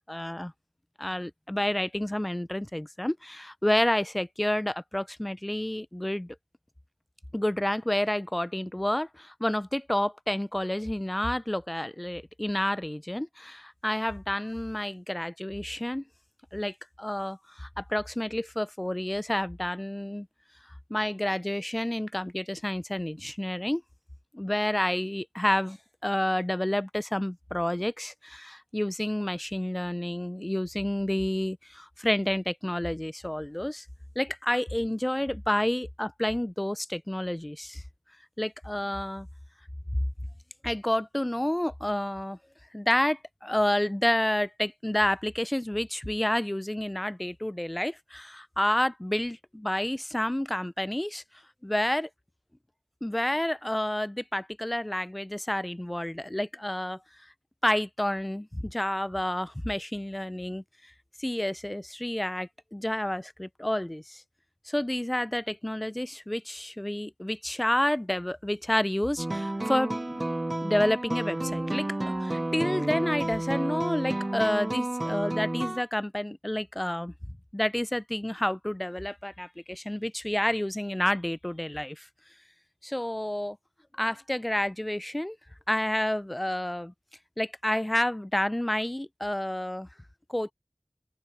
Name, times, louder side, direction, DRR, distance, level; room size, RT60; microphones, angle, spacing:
voice 1, 0.1-0.5 1.0-6.4 7.3-16.0 16.5-20.3 20.9-23.8 24.3-25.8 26.0-33.8 34.2-37.8 38.4-39.3 40.6-42.4 42.7-51.2 51.6-52.1 53.0-57.0 57.6-60.6 61.2-64.2 64.7-70.2 70.6-77.1 77.5-82.1 82.8-83.6 84.0-85.4 85.7-86.9 87.4-89.9 90.3-90.5, left 1 dB, 25° left, 0.5 m, -29 dB
sound 1, 69.2-75.8, right 1 dB, 45° right, 0.6 m, -31 dB
open air
wide cardioid pair, 45°, 0 cm